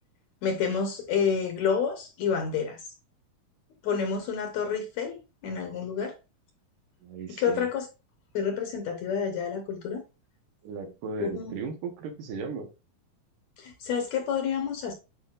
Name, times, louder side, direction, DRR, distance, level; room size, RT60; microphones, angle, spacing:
voice 1, 0.4-2.8 3.8-6.2 7.4-7.9 8.3-10.0 11.2-11.5 13.6-14.9, left 6 dB, 65° left, 2.0 m, -29 dB
voice 2, 7.0-7.7 10.6-12.7, right 5 dB, 75° right, 2.6 m, -36 dB
8.2 x 5.2 x 2.4 m
omnidirectional pair, 4.0 m